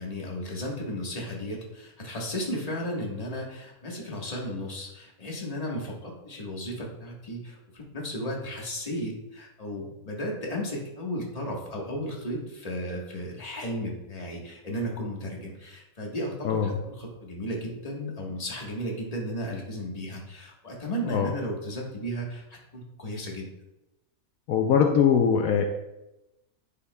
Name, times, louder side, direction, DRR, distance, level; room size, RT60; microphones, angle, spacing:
voice 1, 0.0-22.4 22.7-23.5, equal, 25° left, -2 dB, 1.4 m, -34 dB
voice 2, 24.5-25.7, left 7 dB, 75° left, 4 dB, 1.0 m, -22 dB
9.8 x 5.6 x 2.2 m, 0.94 s
omnidirectional pair, 1.5 m